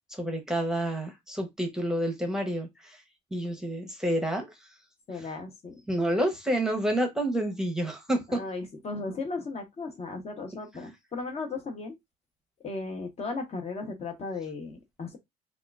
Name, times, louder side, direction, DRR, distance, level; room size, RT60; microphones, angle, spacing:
voice 1, 0.1-3.0 3.3-4.5 5.9-8.4, right 1 dB, 5° right, 0.8 m, -29 dB
voice 2, 5.1-5.8 8.3-11.9 12.6-15.2, left 3 dB, 40° left, 0.9 m, -36 dB
3.5 x 2.4 x 2.4 m
cardioid pair, 110°, 17 cm